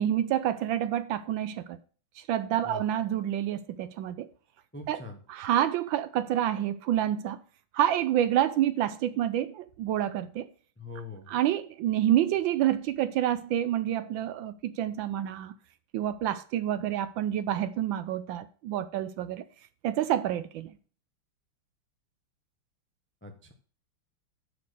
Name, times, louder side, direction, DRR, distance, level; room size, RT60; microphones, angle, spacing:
voice 1, 0.0-1.8 2.2-4.3 4.9-5.0 5.3-7.4 7.7-10.5 11.3-15.5 15.9-19.4 19.8-20.7, right 11 dB, 75° right, 1.2 m, -28 dB
voice 2, 4.7-5.2 10.8-11.4 23.2-23.5, left 3 dB, 10° left, 0.5 m, -42 dB
9.5 x 4.3 x 6.7 m
omnidirectional pair, 2.3 m